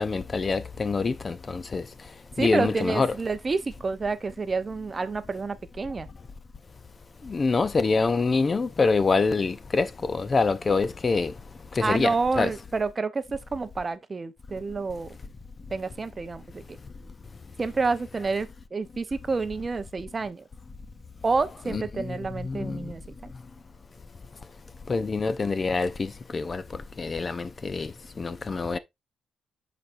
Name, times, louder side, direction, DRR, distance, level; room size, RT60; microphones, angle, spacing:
voice 1, 0.0-1.8 2.4-3.2 7.3-11.3 11.8-12.5 21.7-22.2 22.4-22.8 24.9-26.6 27.0-27.9 28.2-28.8, left 4 dB, 30° left, 0.5 m, -25 dB
voice 2, 2.4-6.1 11.8-15.1 15.7-16.8 17.6-20.4 21.2-23.3, right 4 dB, 25° right, 0.6 m, -29 dB
11.0 x 4.1 x 2.5 m
cardioid pair, 120°, 0 cm